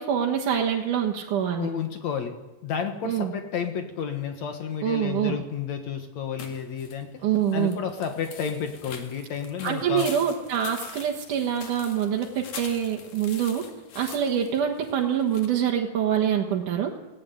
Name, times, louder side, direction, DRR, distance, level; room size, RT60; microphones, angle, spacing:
voice 1, 0.0-1.7 3.0-3.3 4.8-5.4 7.2-7.8 9.6-13.6 14.0-17.0, right 9 dB, 75° right, 0 dB, 3.0 m, -25 dB
voice 2, 1.6-2.3 2.6-7.1 7.5-10.1, left 7 dB, 65° left, 6 dB, 2.6 m, -31 dB
sound 1, 6.4-15.5, left 6 dB, 85° left, 3.8 m, -44 dB
18.5 x 17.5 x 9.3 m, 1.1 s
omnidirectional pair, 3.6 m